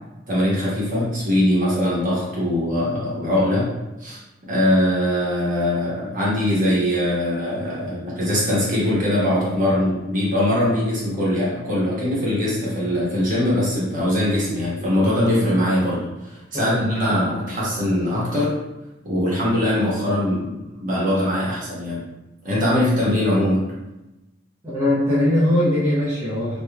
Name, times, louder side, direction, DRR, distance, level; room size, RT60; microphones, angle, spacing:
voice 1, 0.3-3.7 4.0-4.2 4.5-18.6 19.0-22.0 22.4-23.7, left 1 dB, 45° right, -7 dB, 1.2 m, -21 dB
voice 2, 16.5-17.3 24.6-26.6, left 1 dB, 15° right, -11 dB, 0.7 m, -21 dB
3.4 x 2.9 x 2.2 m, 1.0 s
head